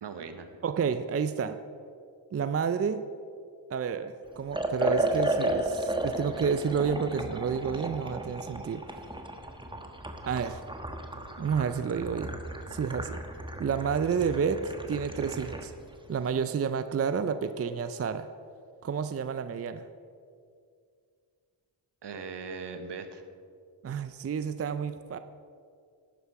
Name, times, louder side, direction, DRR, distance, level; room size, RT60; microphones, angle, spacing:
voice 1, 0.0-0.5 22.0-23.2, right 5 dB, 65° right, 8 dB, 1.2 m, -39 dB
voice 2, 0.6-1.6 2.3-3.1 3.7-9.0 10.3-10.6 11.4-12.4 12.7-13.2 13.6-15.7 16.1-18.3 18.8-19.9 23.8-25.2, right 6 dB, 35° right, 11 dB, 0.5 m, -30 dB
Liquid, 4.5-15.7, right 1 dB, 10° right, 1.2 m, -34 dB
11.5 x 9.9 x 4.8 m, 2.3 s
cardioid pair, 60°, 45 cm